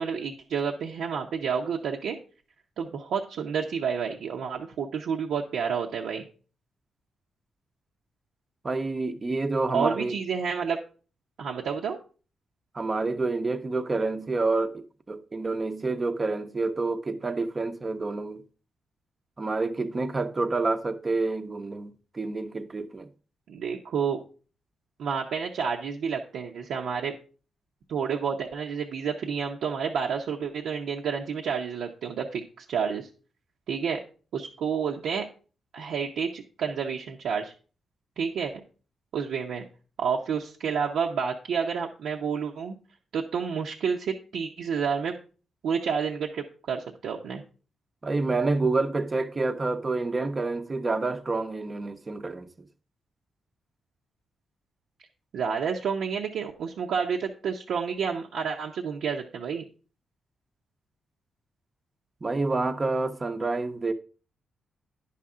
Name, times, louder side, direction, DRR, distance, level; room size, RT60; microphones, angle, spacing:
voice 1, 0.0-2.2 2.8-6.2 9.7-10.8 11.4-12.0 23.5-24.2 25.0-27.2 27.9-33.1 33.7-34.0 34.3-35.3 35.7-37.5 38.2-38.6 39.1-39.6 40.0-42.8 43.1-45.1 45.6-47.4 55.3-59.6, right 6 dB, 80° right, 0.8 m, -29 dB
voice 2, 8.6-10.2 12.7-18.4 19.4-23.1 48.0-52.5 62.2-63.9, right 3 dB, 30° right, 0.7 m, -28 dB
10.0 x 5.8 x 3.7 m
cardioid pair, 95°, 0 cm